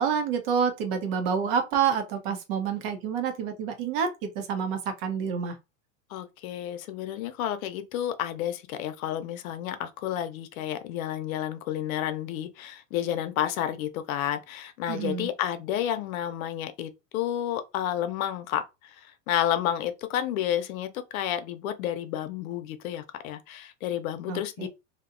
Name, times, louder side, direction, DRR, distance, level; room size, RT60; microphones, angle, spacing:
voice 1, 0.0-5.6 14.9-15.3 24.3-24.7, right 7 dB, 45° right, 0.6 m, -28 dB
voice 2, 6.1-24.7, left 11 dB, 85° left, 0.6 m, -31 dB
2.8 x 2.0 x 2.4 m
supercardioid pair, 150°, 41 cm